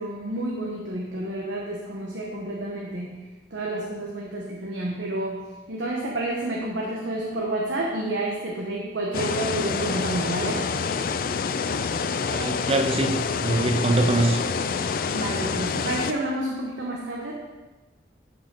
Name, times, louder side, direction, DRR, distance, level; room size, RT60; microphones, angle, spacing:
voice 1, 0.0-3.2 3.5-10.6 15.1-17.4, right 1 dB, 80° right, -2 dB, 1.1 m, -30 dB
sound 1, 9.1-16.1, left 5 dB, 50° left, 0.4 m, -27 dB
voice 2, 12.3-14.4, right 2 dB, 30° right, 4 dB, 0.7 m, -23 dB
12.0 x 5.2 x 3.8 m, 1.2 s
head